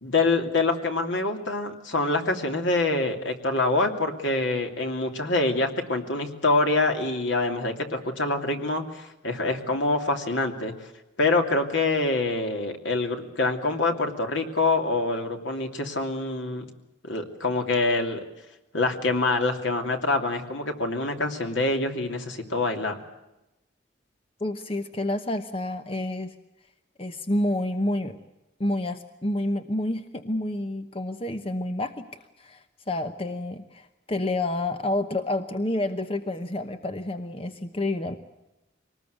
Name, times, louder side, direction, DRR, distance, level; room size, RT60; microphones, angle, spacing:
voice 1, 0.0-10.7 11.2-16.6 17.0-18.2 18.7-23.0, left 2 dB, 75° left, 4 dB, 2.9 m, -25 dB
voice 2, 24.4-26.3 27.0-28.2 28.6-38.2, left 1 dB, 30° left, 8 dB, 0.9 m, -29 dB
24.0 x 19.5 x 8.1 m, 0.94 s
head